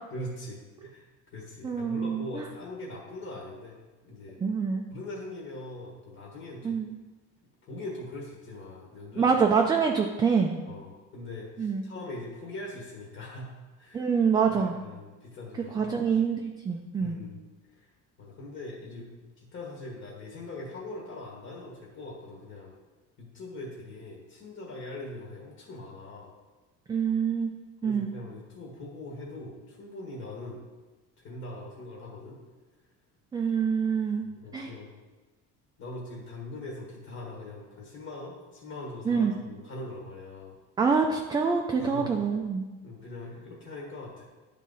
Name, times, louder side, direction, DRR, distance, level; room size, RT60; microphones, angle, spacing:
voice 1, 0.1-3.8 4.0-4.4 4.9-6.8 7.6-9.4 10.7-13.5 13.7-14.1 14.4-15.9 17.0-17.4 17.7-17.9 18.2-19.1 19.4-22.7 23.2-26.3 27.8-30.6 31.2-32.4 34.2-34.9 35.8-40.5 41.8-42.1 42.8-44.2, left 2 dB, 45° left, -3 dB, 1.5 m, -41 dB
voice 2, 1.6-2.5 4.4-4.8 6.6-6.9 9.2-10.6 11.6-11.8 13.9-14.8 15.7-17.2 26.9-27.5 27.8-28.2 33.3-34.7 39.1-39.3 40.8-42.7, right 5 dB, 15° right, 2 dB, 0.3 m, -26 dB
10.0 x 3.7 x 4.0 m, 1.2 s
cardioid pair, 140°, 32 cm